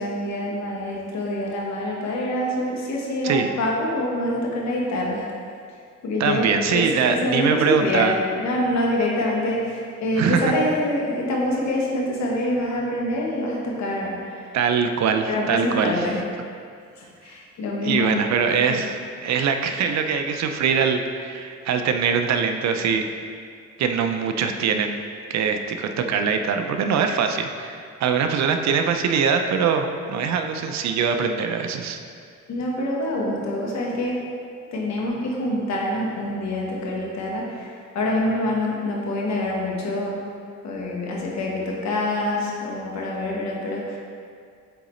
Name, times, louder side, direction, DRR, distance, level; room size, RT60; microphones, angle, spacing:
voice 1, 0.0-5.3 6.0-14.6 15.3-16.2 17.0-18.3 18.5-18.8 32.5-34.3 34.7-40.3 40.6-44.0, left 1 dB, 65° left, -2 dB, 1.3 m, -26 dB
voice 2, 6.2-8.1 10.2-10.5 14.5-16.1 17.8-19.0 19.2-23.1 23.8-25.0 25.3-32.0, right 6 dB, 65° right, 6 dB, 0.5 m, -22 dB
7.8 x 3.8 x 3.1 m, 2.3 s
cardioid pair, 90°, 30 cm